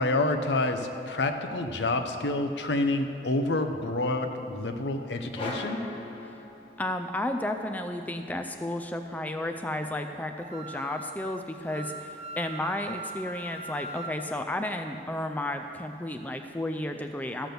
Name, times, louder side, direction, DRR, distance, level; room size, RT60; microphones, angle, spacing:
voice 1, 0.0-5.8, left 2 dB, 75° left, 6 dB, 0.8 m, -28 dB
sound 1, 5.3-7.1, left 2 dB, 30° left, 1.3 m, -38 dB
voice 2, 6.8-17.5, left 1 dB, 10° left, 5 dB, 0.4 m, -33 dB
Wind instrument woodwind instrument, 10.4-14.2, right 2 dB, 35° right, 0.6 m, -40 dB
14.0 x 6.1 x 6.8 m, 2.7 s
head